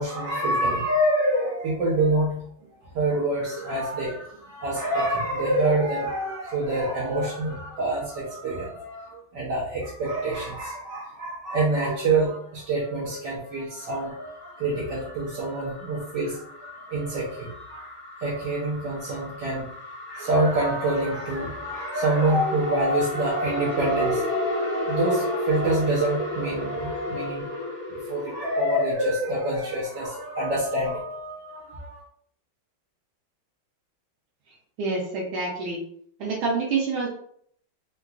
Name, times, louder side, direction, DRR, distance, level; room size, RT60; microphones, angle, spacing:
voice 1, 0.0-2.4 2.9-19.7 20.1-32.0, right 1 dB, 70° right, -5 dB, 1.2 m, -26 dB
sound 1, 13.8-28.9, left 1 dB, 45° left, 1.5 m, -34 dB
voice 2, 34.8-35.8 36.2-37.1, right 4 dB, 85° right, -4 dB, 1.4 m, -27 dB
3.7 x 2.3 x 2.3 m, 0.64 s
omnidirectional pair, 2.2 m